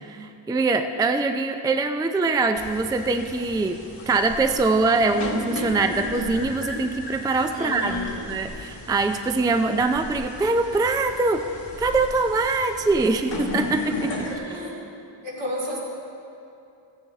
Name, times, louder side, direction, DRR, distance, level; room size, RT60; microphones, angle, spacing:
voice 1, 0.0-3.8 4.1-7.9 8.3-11.4 11.8-14.1, right 3 dB, 10° right, 7 dB, 0.3 m, -23 dB
sound 1, 2.6-14.3, left 2 dB, 65° left, 1.5 m, -35 dB
voice 2, 7.5-8.3 13.9-14.9 15.2-15.8, equal, 70° right, -5 dB, 2.5 m, -32 dB
14.5 x 9.3 x 3.8 m, 2.6 s
wide cardioid pair, 100°, 46 cm